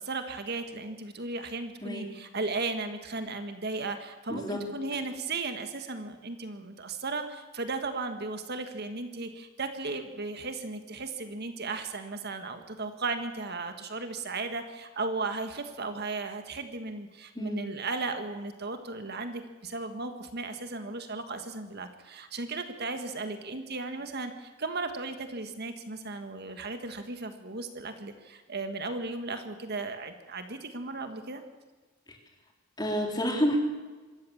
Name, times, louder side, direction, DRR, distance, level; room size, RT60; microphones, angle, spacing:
voice 1, 0.0-31.4, right 3 dB, 55° right, 7 dB, 1.7 m, -36 dB
voice 2, 4.3-4.6 17.4-17.7 32.1-32.2 32.8-33.6, equal, 20° left, 1 dB, 3.8 m, -29 dB
25.5 x 14.0 x 7.3 m, 1.3 s
head